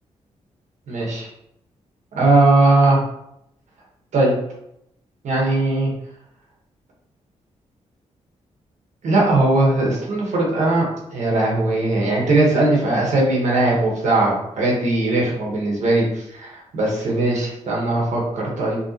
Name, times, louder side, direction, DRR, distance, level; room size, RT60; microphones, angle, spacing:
voice 1, 0.9-1.3 2.1-3.0 4.1-4.3 5.2-5.9 9.0-10.9 11.1-18.8, right 2 dB, 70° right, -3 dB, 1.4 m, -19 dB
5.6 x 2.9 x 3.0 m, 0.78 s
wide cardioid pair, 160°, 13 cm